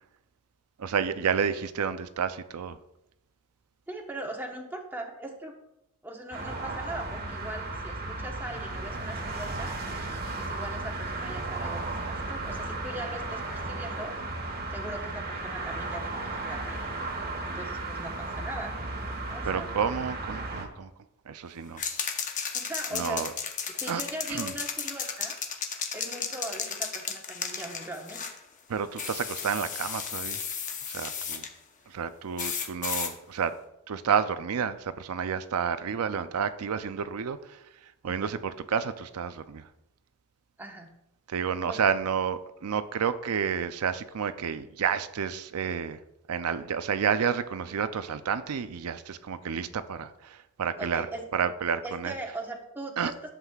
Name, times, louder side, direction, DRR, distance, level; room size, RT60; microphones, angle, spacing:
voice 1, 0.8-2.8 19.5-20.9 21.3-21.8 22.9-23.3 23.9-24.0 24.3-24.5 28.7-30.4 30.9-31.4 31.9-33.5 33.9-37.6 38.0-39.6 41.3-46.0 46.3-51.1 51.3-52.1 53.0-53.1, right 7 dB, 75° right, 12 dB, 0.5 m, -30 dB
voice 2, 3.9-5.5 6.0-9.7 10.4-14.2 14.7-16.8 17.4-18.8 19.3-19.7 22.5-23.3 23.8-25.4 25.9-28.2 38.1-38.4 40.6-40.9 41.7-41.8 50.8-51.2 51.8-53.3, right 1 dB, 10° right, 1 dB, 1.1 m, -40 dB
sound 1, 6.3-20.7, right 2 dB, 45° right, 1.3 m, -35 dB
sound 2, 21.8-28.4 29.0-31.5 32.4-33.1, left 6 dB, 35° left, 0.8 m, -34 dB
11.5 x 7.4 x 2.4 m, 0.86 s
head